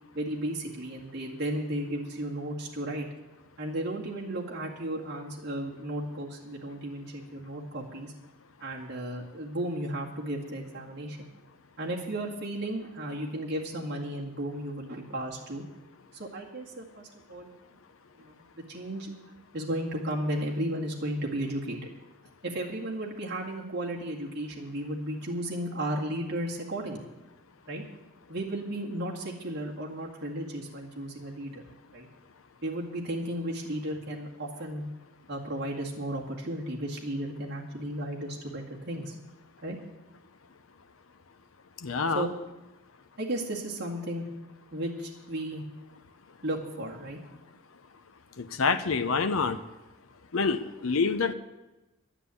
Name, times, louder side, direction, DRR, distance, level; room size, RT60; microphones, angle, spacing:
voice 1, 0.1-3.1 3.6-8.1 8.6-11.3 11.8-15.6 16.1-17.5 18.2-18.4 18.7-19.1 19.5-21.8 22.4-27.0 27.7-27.8 28.3-31.6 31.9-32.1 32.6-34.8 35.3-39.2 39.6-39.8 42.1-42.3 43.2-44.3 44.7-45.6 46.4-47.2, right 1 dB, 50° right, -3 dB, 2.0 m, -34 dB
voice 2, 41.8-42.3 48.4-49.6 50.3-51.3, left 4 dB, 70° left, 9 dB, 0.7 m, -27 dB
11.5 x 9.9 x 8.4 m, 1.0 s
head